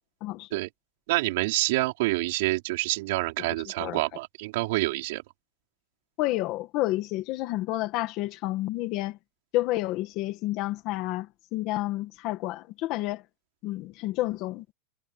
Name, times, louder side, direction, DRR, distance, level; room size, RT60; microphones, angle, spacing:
voice 1, 1.1-5.2, right 20 dB, 60° right, 4.7 m, -27 dB
voice 2, 6.2-9.2 9.5-13.2 13.6-14.6, left 17 dB, 35° left, 1.7 m, -30 dB
supercardioid pair, 175°, 0 cm